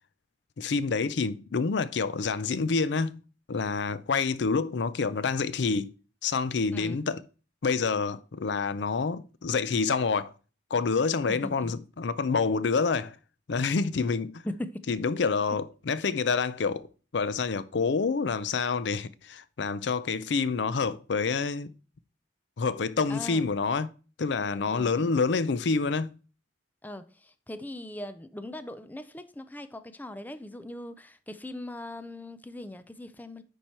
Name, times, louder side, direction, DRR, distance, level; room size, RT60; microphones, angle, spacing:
voice 1, 0.6-3.2 3.5-5.9 6.2-7.2 7.6-10.3 10.7-13.2 13.5-14.4 14.9-16.9 17.1-21.7 22.6-23.9 24.2-26.2, left 4 dB, 70° left, 0.5 m, -27 dB
voice 2, 11.3-11.7 14.4-14.8 23.1-23.4 24.4-25.1 26.8-33.4, left 1 dB, 10° left, 0.5 m, -40 dB
10.0 x 4.5 x 4.4 m
head